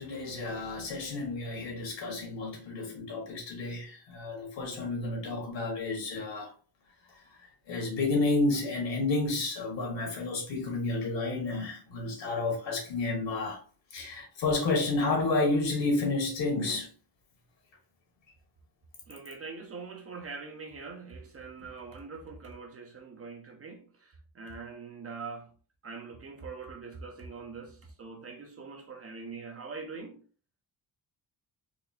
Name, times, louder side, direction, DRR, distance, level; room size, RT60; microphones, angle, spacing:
voice 1, 0.0-6.5 7.7-13.6 13.9-16.9, left 3 dB, 80° left, 1.5 m, -30 dB
voice 2, 19.1-25.5 25.8-30.2, right 4 dB, 35° right, 0.5 m, -43 dB
4.1 x 2.5 x 2.7 m
wide cardioid pair, 170°, 44 cm